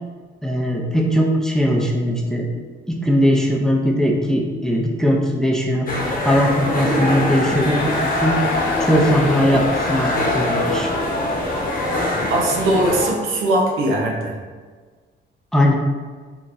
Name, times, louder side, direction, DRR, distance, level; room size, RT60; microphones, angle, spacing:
voice 1, 0.4-2.5 2.9-5.9 6.2-8.4 8.8-10.9 15.5-15.7, equal, 5° left, 0 dB, 0.5 m, -19 dB
sound 1, 5.9-13.1, left 1 dB, 45° left, 0.9 m, -23 dB
Crowd, 7.6-12.8, left 5 dB, 65° left, 0.4 m, -31 dB
voice 2, 12.3-14.4, right 1 dB, 90° right, -1 dB, 0.7 m, -20 dB
3.8 x 2.9 x 2.5 m, 1.5 s
cardioid pair, 90°, 20 cm